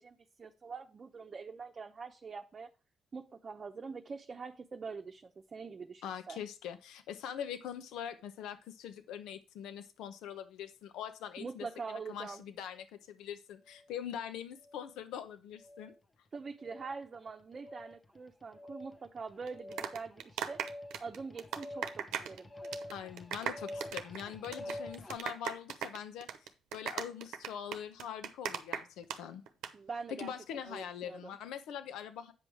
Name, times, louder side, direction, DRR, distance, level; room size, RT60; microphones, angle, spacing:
voice 1, 0.0-2.7 3.1-6.4 11.4-12.4 16.3-20.6 21.0-22.5 29.7-30.3 30.6-31.4, right 4 dB, 40° right, 3 dB, 0.8 m, -44 dB
voice 2, 6.0-15.9 22.9-29.4 30.1-32.3, left 9 dB, 90° left, 9 dB, 0.9 m, -43 dB
sound 1, 13.7-13.9 14.6-15.0 15.6-16.0 16.6-17.0 17.5-18.0 18.5-25.2, left 1 dB, 20° left, 0.8 m, -47 dB
sound 2, 19.5-22.4 22.6-22.9 23.2-29.2 29.5-29.7, right 9 dB, 90° right, 0.9 m, -38 dB
8.8 x 5.5 x 4.7 m, 0.31 s
cardioid pair, 90°, 0 cm